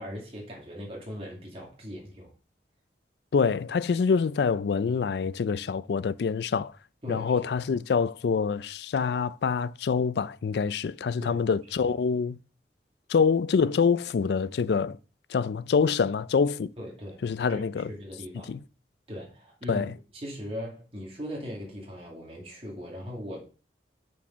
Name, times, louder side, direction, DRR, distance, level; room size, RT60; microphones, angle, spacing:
voice 1, 0.0-2.3 7.0-7.7 11.2-11.4 11.8-12.0 16.8-17.2 17.5-18.5 19.1-19.9 20.1-23.4, equal, 35° right, 2.2 m, -39 dB
voice 2, 3.3-6.7 7.1-12.4 13.1-15.0 15.3-16.7 17.2-17.9 18.5-18.6 19.7-19.9, left 5 dB, 75° left, 0.4 m, -26 dB
7.3 x 4.6 x 5.6 m
head